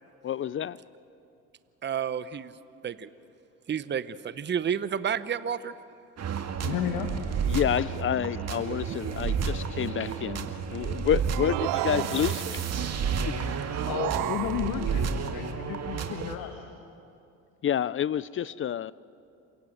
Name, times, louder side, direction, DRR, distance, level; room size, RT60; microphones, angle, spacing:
voice 1, 0.2-0.8 7.5-12.6 13.2-13.3 17.6-18.9, left 9 dB, 35° left, 20 dB, 0.5 m, -29 dB
voice 2, 1.8-2.5 2.8-3.1 3.7-5.7, right 8 dB, 30° right, 15 dB, 0.8 m, -30 dB
sound 1, 6.2-16.4, right 6 dB, 45° right, 2.0 m, -31 dB
voice 3, 6.6-7.4 11.9-12.2 13.9-16.6, left 10 dB, 75° left, 6 dB, 1.6 m, -33 dB
sound 2, 11.3-12.6 13.7-15.0, right 21 dB, 75° right, 0.5 m, -33 dB
27.5 x 17.5 x 7.8 m, 2.7 s
supercardioid pair, 85°, 35 cm